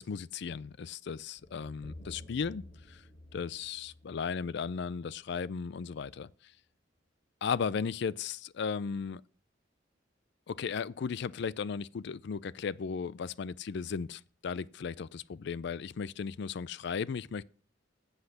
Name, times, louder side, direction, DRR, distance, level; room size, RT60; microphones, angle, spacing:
voice 1, 0.0-3.0 3.3-6.3 7.4-9.2 10.5-17.4, left 6 dB, 65° left, 0.4 m, -36 dB
sound 1, 1.4-5.5, left 1 dB, 40° left, 3.6 m, -51 dB
8.1 x 7.8 x 7.0 m
head